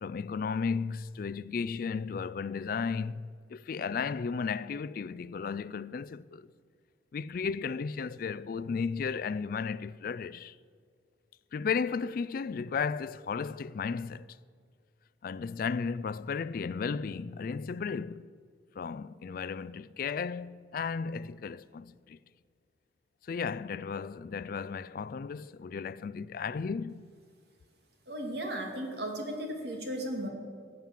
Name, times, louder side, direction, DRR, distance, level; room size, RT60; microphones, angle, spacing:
voice 1, 0.0-6.5 7.1-10.6 11.5-14.3 15.2-18.3 18.8-22.2 23.2-27.1, left 5 dB, 50° left, 0.3 m, -34 dB
voice 2, 28.1-30.3, right 1 dB, 60° right, 2.4 m, -35 dB
16.5 x 8.8 x 7.5 m
head